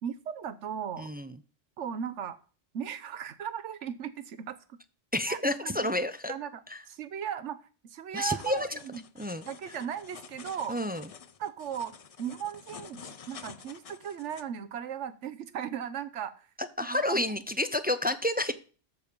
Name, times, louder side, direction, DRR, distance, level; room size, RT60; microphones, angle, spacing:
voice 1, 0.0-1.1 1.8-2.4 2.7-4.8 5.3-5.4 5.6-5.9 6.3-6.6 6.9-9.0 9.5-10.8 11.4-11.9 12.2-16.5 16.9-17.2, right 8 dB, 85° right, 14 dB, 1.1 m, -37 dB
voice 2, 1.0-1.4 5.1-6.3 6.7-6.8 8.1-8.8 9.2-9.4 10.7-11.1 16.6-18.5, left 1 dB, 15° right, 10 dB, 0.4 m, -30 dB
sound 1, 8.1-14.4, left 6 dB, 45° left, 0.5 m, -49 dB
13.5 x 4.8 x 5.2 m, 0.37 s
omnidirectional pair, 1.2 m